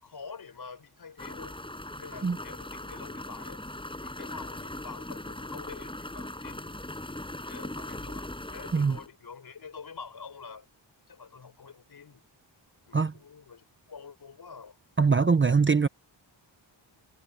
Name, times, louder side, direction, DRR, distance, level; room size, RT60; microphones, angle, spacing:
voice 1, 0.0-1.6 2.0-3.6 4.0-6.8 7.4-10.7 11.1-12.2 12.9-14.8, left 5 dB, 55° left, 4.9 m, -46 dB
sound 1, 1.2-9.1, left 1 dB, 10° left, 6.1 m, -40 dB
voice 2, 15.0-15.9, right 5 dB, 25° right, 0.7 m, -22 dB
wide cardioid pair, 145°, 45 cm